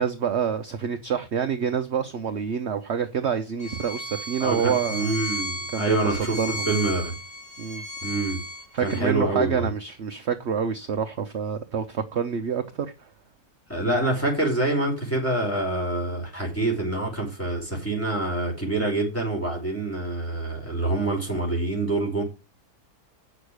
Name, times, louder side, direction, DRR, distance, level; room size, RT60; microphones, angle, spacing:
voice 1, 0.0-5.1 5.7-6.7 7.6-7.8 8.7-13.1, right 7 dB, 50° right, 1.0 m, -27 dB
Bowed string instrument, 3.6-9.0, left 1 dB, 55° left, 2.8 m, -34 dB
voice 2, 4.4-7.1 8.0-8.4 8.8-9.7 13.7-22.2, right 2 dB, 10° left, 5.4 m, -26 dB
8.9 x 6.8 x 6.5 m
omnidirectional pair, 1.7 m